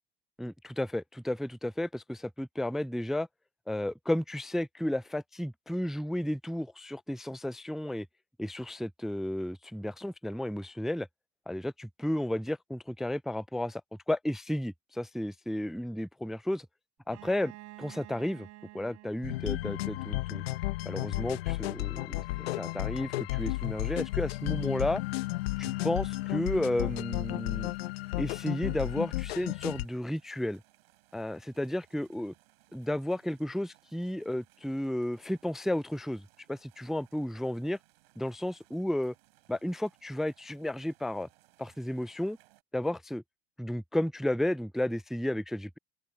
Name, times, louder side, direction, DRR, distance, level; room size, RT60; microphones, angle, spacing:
voice 1, 0.4-3.3 3.7-8.1 8.4-11.1 11.5-13.8 14.1-16.7 17.1-17.5 17.8-18.5 18.7-20.4 20.9-25.0 25.6-27.7 28.2-30.6 31.1-32.3 32.7-37.8 38.2-39.1 39.5-41.3 41.6-42.4 42.7-43.2 43.6-45.8, left 1 dB, ahead, 0.3 m, -33 dB
Bowed string instrument, 17.1-20.8, right 19 dB, 60° right, 4.0 m, -51 dB
sound 1, 19.2-29.9, left 18 dB, 80° left, 0.8 m, -33 dB
sound 2, 23.4-42.6, right 18 dB, 75° right, 7.0 m, -66 dB
open air
hypercardioid pair, 75°, 30 cm